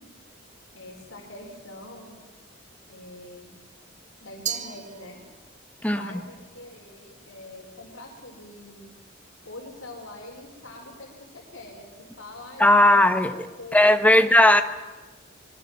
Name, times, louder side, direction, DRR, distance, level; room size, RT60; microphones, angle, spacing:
voice 1, 0.7-2.1 2.9-3.5 4.2-5.2 6.0-8.9 9.4-13.8 14.1-14.3, left 2 dB, 85° left, 0 dB, 4.8 m, -44 dB
Glass, 4.5-5.7, right 8 dB, 40° right, 1.5 m, -35 dB
voice 2, 5.8-6.1 12.6-13.3 13.7-14.6, left 1 dB, 5° left, 9 dB, 1.3 m, -17 dB
25.0 x 22.5 x 7.3 m, 1.3 s
head